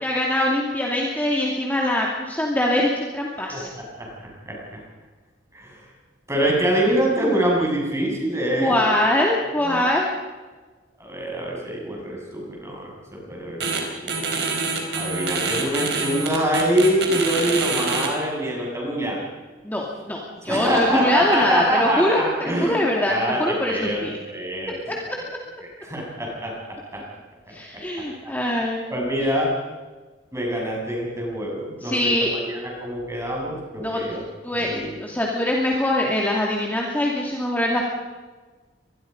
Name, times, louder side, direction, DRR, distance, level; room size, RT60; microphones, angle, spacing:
voice 1, 0.0-3.7 8.6-10.1 19.6-24.1 24.9-25.0 27.5-28.8 31.8-32.3 33.8-34.0 34.4-37.9, left 1 dB, 10° left, -2 dB, 2.6 m, -23 dB
voice 2, 4.4-4.8 5.5-5.8 6.3-9.3 9.6-9.9 11.0-14.2 14.9-19.2 20.4-24.0 24.3-24.7 25.2-25.3 25.8-26.5 26.9-27.0 28.9-29.5 30.3-34.2 34.5-35.0, right 1 dB, 15° right, -2 dB, 7.2 m, -25 dB
sound 1, 13.6-13.8 14.1-18.1, right 4 dB, 70° right, 4.6 m, -25 dB
25.5 x 21.0 x 5.4 m, 1.3 s
head